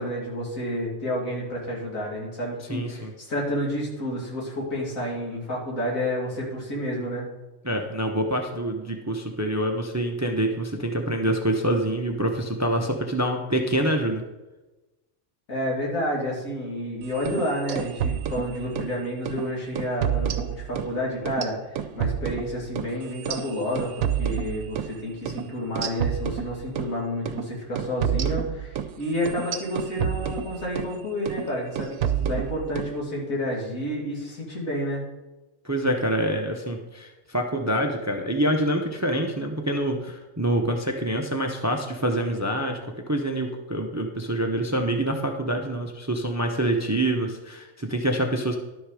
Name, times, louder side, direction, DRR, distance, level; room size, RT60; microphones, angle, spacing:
voice 1, 0.0-7.3 15.5-35.0, equal, 80° left, -4 dB, 3.0 m, -30 dB
voice 2, 2.7-3.1 7.6-14.2 35.6-48.6, right 1 dB, 15° right, 3 dB, 0.6 m, -26 dB
sound 1, 17.1-18.9 19.3-19.4 19.8-20.9 21.3-24.9 25.3-25.4 25.8-26.9 27.3-27.4 27.8-30.9 31.3-31.5 31.8-32.9, right 9 dB, 75° right, 1.0 m, -29 dB
11.5 x 6.3 x 4.9 m, 1.1 s
omnidirectional pair, 1.4 m